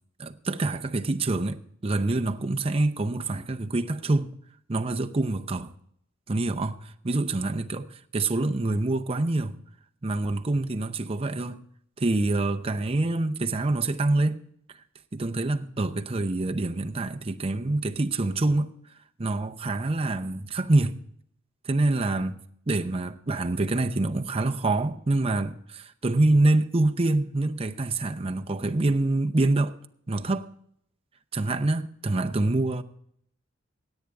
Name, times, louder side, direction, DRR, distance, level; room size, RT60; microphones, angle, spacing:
voice 1, 0.2-4.3 4.7-5.7 6.3-7.9 8.1-9.6 10.0-11.6 12.0-14.4 15.1-18.7 19.2-21.0 21.7-22.4 22.7-29.8 30.1-30.5 31.3-32.8, right 2 dB, 30° right, 0.7 m, -26 dB
17.0 x 8.9 x 3.5 m
head